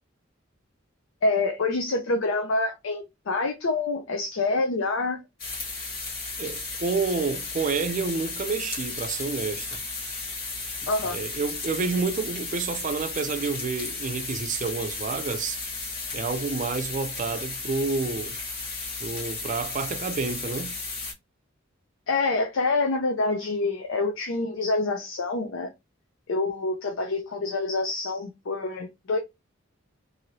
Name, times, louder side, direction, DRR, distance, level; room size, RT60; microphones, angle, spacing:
voice 1, 1.2-5.2 10.9-11.2 22.1-25.7 26.3-29.2, left 3 dB, 75° left, 0.5 m, -26 dB
sound 1, 5.4-21.1, left 3 dB, 55° left, 1.5 m, -34 dB
voice 2, 6.4-9.8 11.0-15.6 16.1-18.4 19.0-20.7, right 4 dB, 40° right, 0.4 m, -29 dB
2.9 x 2.7 x 2.7 m
head